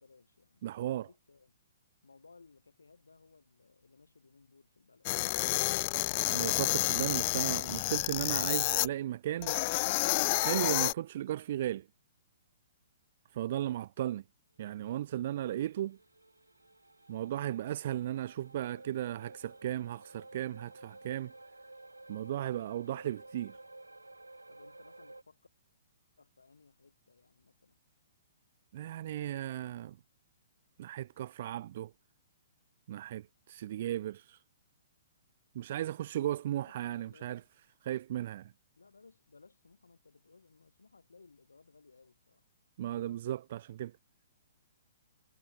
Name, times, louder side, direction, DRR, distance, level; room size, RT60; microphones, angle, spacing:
voice 1, 0.0-0.6 0.9-1.5 2.0-5.2 24.5-25.4 26.2-27.8 36.2-37.5 38.8-42.4, left 4 dB, 80° left, 7.1 m, -61 dB
voice 2, 0.6-1.1 6.3-9.6 10.3-11.9 13.3-14.2 14.6-16.0 17.1-21.3 22.1-23.6 28.7-30.0 30.8-31.9 32.9-34.4 35.5-37.4 37.8-38.5 42.8-43.9, right 12 dB, 50° right, 1.3 m, -35 dB
sound 1, 5.0-8.9 9.4-10.9, left 23 dB, 40° left, 0.9 m, -30 dB
sound 2, 15.0-25.2, right 2 dB, 90° right, 7.6 m, -54 dB
figure-of-eight pair, 120°, 0 cm